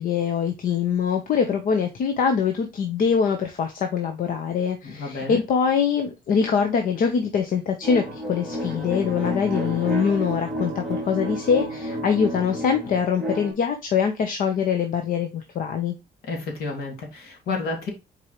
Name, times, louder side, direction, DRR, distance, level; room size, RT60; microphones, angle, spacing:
voice 1, 0.0-15.9, left 6 dB, 60° left, 1.0 m, -23 dB
voice 2, 4.8-5.4 16.3-17.9, left 3 dB, 75° left, 2.9 m, -30 dB
sound 1, 7.8-13.5, equal, 5° left, 3.0 m, -30 dB
6.5 x 4.6 x 3.1 m
cardioid pair, 140°, 16 cm